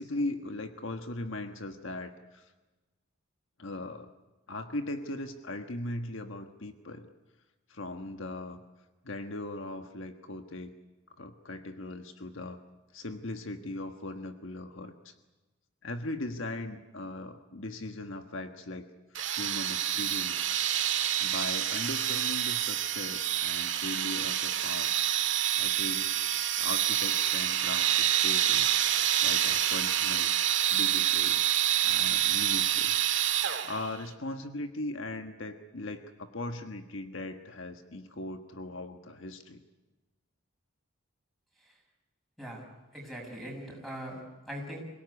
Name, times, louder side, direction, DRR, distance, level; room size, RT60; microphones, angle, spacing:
voice 1, 0.0-2.5 3.6-4.1 4.5-7.1 7.7-8.6 9.0-10.7 11.2-12.6 12.9-15.1 15.8-18.9 19.4-20.5 20.8-20.9 21.2-25.0 25.6-26.1 26.6-28.8 29.2-30.3 30.7-31.4 31.8-32.9 33.3-33.4 33.6-39.6, left 2 dB, 65° left, 6 dB, 1.4 m, -39 dB
sound 1, 19.1-33.9, right 11 dB, 60° right, 1.9 m, -27 dB
voice 2, 42.9-44.2 44.5-44.8, equal, ahead, 0 dB, 6.5 m, -41 dB
26.5 x 17.5 x 9.7 m, 1.2 s
head